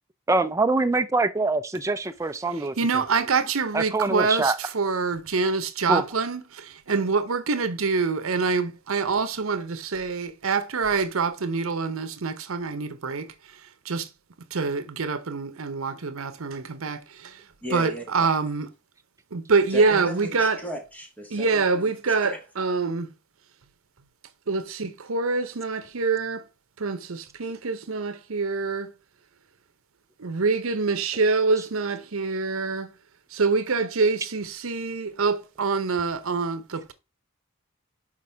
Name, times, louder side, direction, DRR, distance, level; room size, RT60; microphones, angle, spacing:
voice 1, 0.3-2.7 3.7-4.6 5.9-6.0, right 3 dB, 15° right, 0.4 m, -24 dB
voice 2, 2.8-13.3 13.8-14.1 14.5-17.4 17.7-18.6 19.3-20.6 21.3-23.1 24.5-26.4 26.8-28.9 30.2-32.9 33.3-36.9, right 4 dB, 80° right, 0.8 m, -25 dB
voice 3, 17.6-18.3 19.7-20.0 20.4-22.4, equal, 5° left, 1.4 m, -36 dB
6.0 x 4.8 x 3.4 m
head